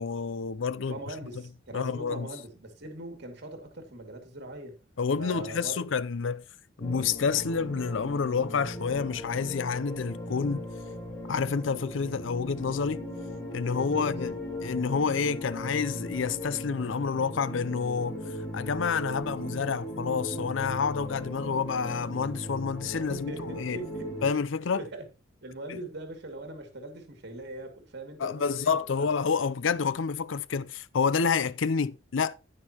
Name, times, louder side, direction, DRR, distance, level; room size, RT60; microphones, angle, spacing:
voice 1, 0.0-1.0 1.7-2.3 5.0-6.4 6.8-10.6 11.3-13.0 13.5-14.4 14.6-18.2 18.5-23.8 24.2-24.8 25.7-25.8 28.2-32.3, left 5 dB, 80° left, 0.5 m, -29 dB
voice 2, 0.9-4.8 5.2-5.8 13.7-14.1 23.1-24.3 24.7-25.0 25.4-28.7 29.0-29.1, right 1 dB, 60° right, 2.3 m, -41 dB
sound 1, 6.8-24.3, equal, 15° left, 6.7 m, -38 dB
10.0 x 9.7 x 2.9 m
head